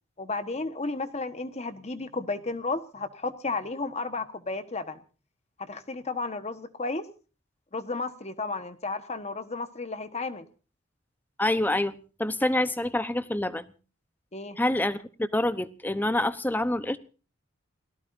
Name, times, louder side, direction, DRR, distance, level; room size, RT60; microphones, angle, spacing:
voice 1, 0.2-5.0 5.7-7.0 7.7-10.4 14.3-14.6, left 3 dB, 35° left, 10 dB, 1.3 m, -33 dB
voice 2, 11.4-11.9 12.2-13.7 14.6-17.0, left 1 dB, 10° left, 13 dB, 0.8 m, -26 dB
29.0 x 17.5 x 2.6 m, 0.37 s
head